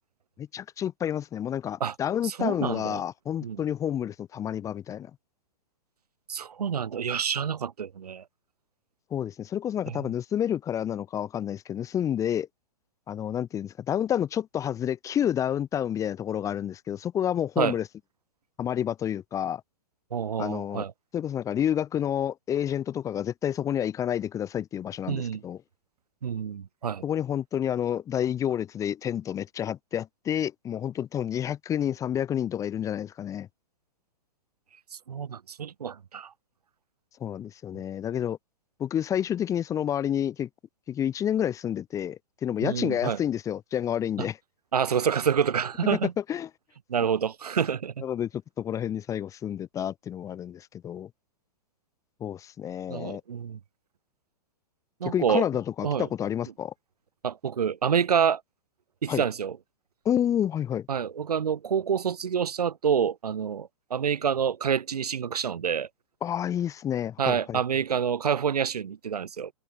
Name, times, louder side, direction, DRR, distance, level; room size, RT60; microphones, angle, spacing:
voice 1, 0.4-5.1 9.1-12.5 13.1-17.9 18.6-19.6 20.4-20.8 21.1-25.6 27.0-33.5 37.2-38.4 38.8-40.5 40.9-44.4 45.9-46.0 46.3-46.5 48.0-48.3 48.6-51.1 52.2-53.2 55.0-56.7 59.1-59.2 60.0-60.9 66.2-67.6, left 10 dB, 15° left, 1.2 m, -29 dB
voice 2, 2.2-3.0 3.4-3.6 6.3-8.2 9.9-10.0 17.6-17.7 20.1-20.9 25.1-25.4 26.2-27.0 34.9-36.3 42.6-43.2 44.2-44.3 44.7-46.1 46.9-48.0 52.9-53.6 55.0-55.4 55.8-56.1 57.2-58.4 59.0-59.6 60.9-65.9 67.2-69.5, right 7 dB, 90° right, 2.7 m, -27 dB
open air
hypercardioid pair, 145°, 19 cm